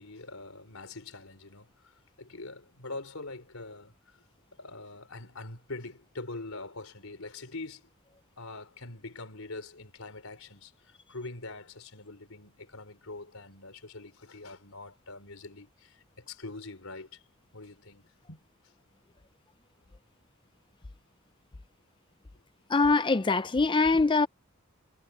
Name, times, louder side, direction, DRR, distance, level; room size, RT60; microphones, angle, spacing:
voice 1, 0.0-1.9 2.2-3.9 4.6-7.9 8.4-17.2 17.5-18.4, left 2 dB, 90° left, 4.1 m, -44 dB
voice 2, 22.7-24.3, left 3 dB, 25° left, 0.5 m, -23 dB
head